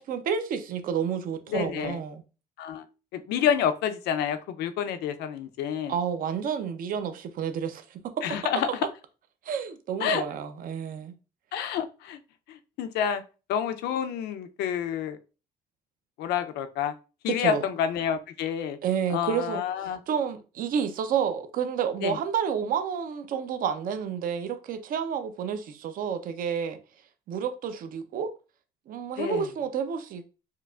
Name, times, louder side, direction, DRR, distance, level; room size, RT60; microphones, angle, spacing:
voice 1, 0.0-2.2 5.9-8.0 9.5-11.1 17.3-17.6 18.8-19.6 20.1-26.8 27.3-28.3 28.9-30.2, right 7 dB, 55° right, 0.5 m, -30 dB
voice 2, 1.5-2.0 2.6-2.9 3.1-5.9 8.2-8.7 10.0-10.2 11.5-12.2 12.5-13.2 13.5-15.2 16.2-16.9 17.2-18.8 19.1-20.0 22.0-22.2 29.2-29.4, left 8 dB, 80° left, 0.5 m, -28 dB
4.6 x 2.4 x 2.3 m
cardioid pair, 110°, 17 cm